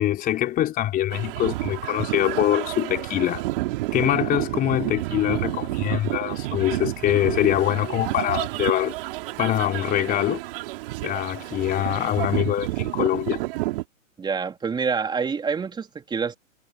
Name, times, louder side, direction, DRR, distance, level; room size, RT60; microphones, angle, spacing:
voice 1, 0.0-3.5 3.9-8.9 9.4-10.4 11.0-13.4, left 13 dB, 20° left, 3.6 m, -24 dB
sound 1, 1.1-13.8, right 19 dB, 40° right, 3.1 m, -30 dB
voice 2, 14.2-16.4, right 5 dB, 10° right, 3.6 m, -27 dB
hypercardioid pair, 135°, 40 cm